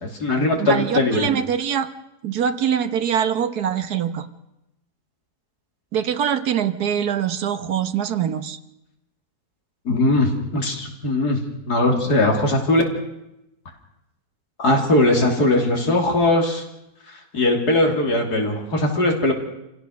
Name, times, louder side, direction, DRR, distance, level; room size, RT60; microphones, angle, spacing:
voice 1, 0.0-1.3 9.9-12.8 14.6-16.6 17.1-19.3, left 2 dB, 90° left, 2 dB, 3.6 m, -20 dB
voice 2, 0.6-1.9 2.2-4.3 5.9-8.6, right 8 dB, 80° right, 10 dB, 1.7 m, -23 dB
27.5 x 16.5 x 6.5 m, 0.90 s
omnidirectional pair, 1.6 m